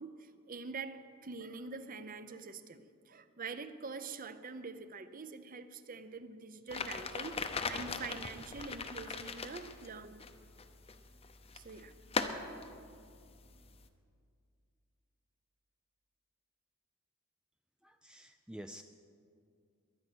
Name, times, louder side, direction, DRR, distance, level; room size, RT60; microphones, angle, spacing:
voice 1, 0.0-10.2 11.5-11.9, right 4 dB, 40° right, 12 dB, 0.7 m, -45 dB
sound 1, 6.7-13.9, left 4 dB, 25° left, 0.7 m, -41 dB
voice 2, 17.8-18.8, right 1 dB, 5° right, 7 dB, 0.3 m, -49 dB
22.5 x 9.3 x 6.1 m, 2.3 s
head